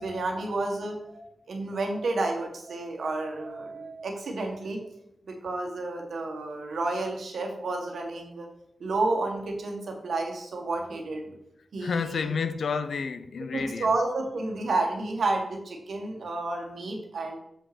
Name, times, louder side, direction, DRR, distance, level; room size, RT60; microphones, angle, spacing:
voice 1, 0.0-4.8 5.3-8.5 8.8-11.3 11.7-12.3 13.5-17.4, right 2 dB, 90° right, 1.7 m, -31 dB
voice 2, 11.8-14.0, left 5 dB, 90° left, 0.6 m, -30 dB
7.4 x 5.6 x 5.1 m
wide cardioid pair, 135°, 0 cm